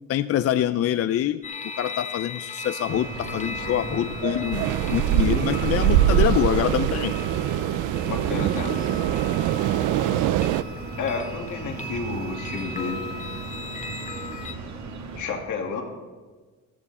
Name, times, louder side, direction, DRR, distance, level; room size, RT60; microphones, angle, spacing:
voice 1, 0.1-1.4 1.8-7.1, left 11 dB, 50° left, 13 dB, 0.5 m, -25 dB
sound 1, 1.4-14.5, left 4 dB, 25° left, 1.3 m, -37 dB
sound 2, 2.9-15.2, right 4 dB, 65° right, 2.1 m, -36 dB
sound 3, 4.5-10.6, right 13 dB, 85° right, 0.5 m, -23 dB
voice 2, 8.1-8.8 11.0-13.0 15.2-15.8, left 4 dB, 85° left, 2 dB, 2.5 m, -30 dB
15.0 x 12.0 x 4.2 m, 1.4 s
cardioid pair, 90°, 30 cm